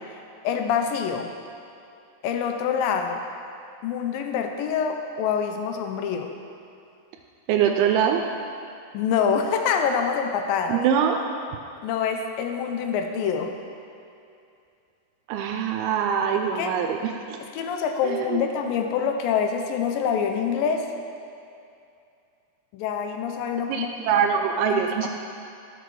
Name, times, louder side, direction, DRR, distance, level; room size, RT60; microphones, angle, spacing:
voice 1, 0.4-1.3 2.2-3.2 3.8-6.3 8.9-10.8 11.8-13.5 16.6-16.7 17.5-20.9 22.7-23.9 24.7-25.1, left 7 dB, 80° left, 4 dB, 2.1 m, -26 dB
voice 2, 7.5-8.2 10.7-11.3 15.3-17.4 18.0-18.5 23.7-25.1, right 8 dB, 85° right, 3 dB, 2.5 m, -23 dB
11.0 x 6.6 x 4.6 m, 2.6 s
omnidirectional pair, 4.4 m